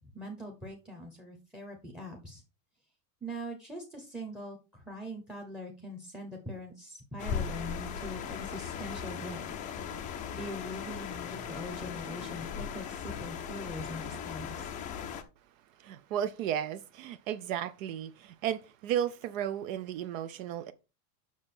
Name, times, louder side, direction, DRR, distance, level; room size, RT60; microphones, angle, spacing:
voice 1, 0.1-2.4 3.2-9.5 9.9-14.7, equal, ahead, 0.8 m, -42 dB
sound 1, 7.2-15.2, left 7 dB, 15° left, 0.5 m, -38 dB
voice 2, 15.8-20.7, right 10 dB, 55° right, 0.7 m, -34 dB
7.2 x 6.2 x 4.3 m
supercardioid pair, 170°, 48 cm